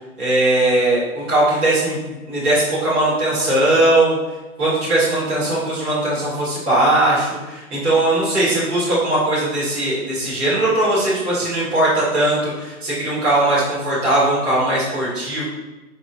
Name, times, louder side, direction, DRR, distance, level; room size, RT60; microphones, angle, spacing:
voice 1, 0.2-4.2 4.6-15.4, right 1 dB, 5° right, -14 dB, 0.4 m, -19 dB
5.1 x 3.2 x 2.5 m, 1.1 s
figure-of-eight pair, 130°, 44 cm